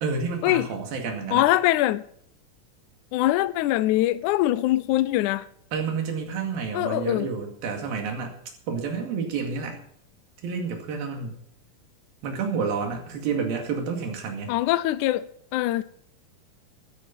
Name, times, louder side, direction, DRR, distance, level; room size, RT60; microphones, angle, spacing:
voice 1, 0.0-1.5 5.7-8.4 8.7-9.8 10.4-11.3 12.2-14.6, right 5 dB, 85° right, 4.1 m, -29 dB
voice 2, 1.3-2.0 3.1-5.5 6.7-7.3 14.5-15.8, left 15 dB, 80° left, 1.8 m, -23 dB
13.0 x 10.5 x 5.3 m
omnidirectional pair, 4.1 m